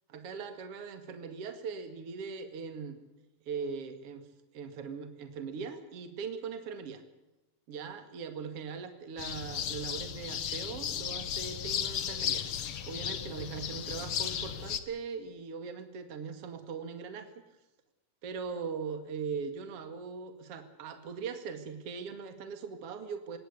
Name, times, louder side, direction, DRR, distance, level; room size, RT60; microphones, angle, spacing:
voice 1, 0.1-3.0 3.5-4.2 4.5-7.0 7.7-12.4 12.9-17.4 18.2-23.4, right 5 dB, 50° right, 8 dB, 2.8 m, -40 dB
sound 1, 9.2-14.8, left 9 dB, 55° left, 1.6 m, -35 dB
21.0 x 17.0 x 8.4 m, 0.99 s
omnidirectional pair, 3.8 m